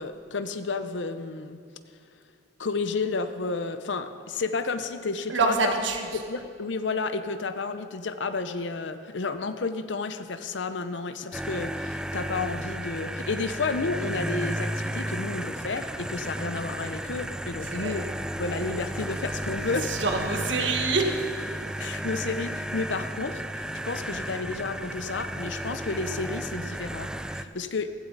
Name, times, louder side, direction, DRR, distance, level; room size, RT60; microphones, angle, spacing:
voice 1, 0.0-1.6 2.6-5.8 6.1-18.1 18.4-19.9 21.8-27.9, left 4 dB, 75° left, 10 dB, 0.7 m, -31 dB
voice 2, 5.3-6.1 17.7-18.0 19.8-21.2, right 3 dB, 80° right, 3 dB, 1.5 m, -26 dB
sound 1, 11.3-27.5, right 1 dB, 5° right, 0.3 m, -33 dB
15.5 x 15.5 x 4.0 m, 2.2 s
head